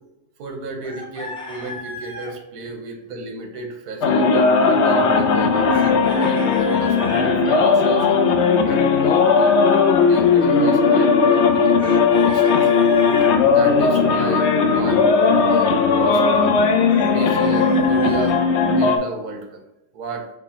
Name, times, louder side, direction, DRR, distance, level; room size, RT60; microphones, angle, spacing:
voice 1, 0.4-9.5 10.1-13.0 13.4-16.5 17.1-18.4 18.6-19.6 19.9-20.3, right 3 dB, 80° right, 3 dB, 1.4 m, -33 dB
Chicken rooster, 0.8-2.3 5.7-7.3 11.8-13.3 16.9-18.4, left 2 dB, 5° left, 0.6 m, -34 dB
sound 1, 4.0-19.0, left 5 dB, 70° left, 0.6 m, -17 dB
4.7 x 3.8 x 2.8 m, 0.91 s
omnidirectional pair, 1.7 m